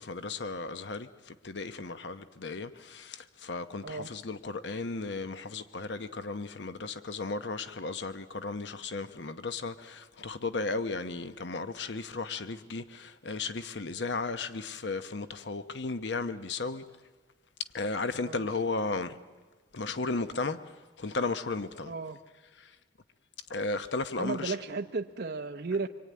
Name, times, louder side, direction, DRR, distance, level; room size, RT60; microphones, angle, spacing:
voice 1, 0.0-16.8 17.7-19.2 19.7-21.9 22.6-22.8 23.5-24.5, left 3 dB, 80° left, 0.9 m, -35 dB
voice 2, 21.9-22.2 24.2-25.9, right 4 dB, 60° right, 0.8 m, -34 dB
25.0 x 24.0 x 9.5 m
head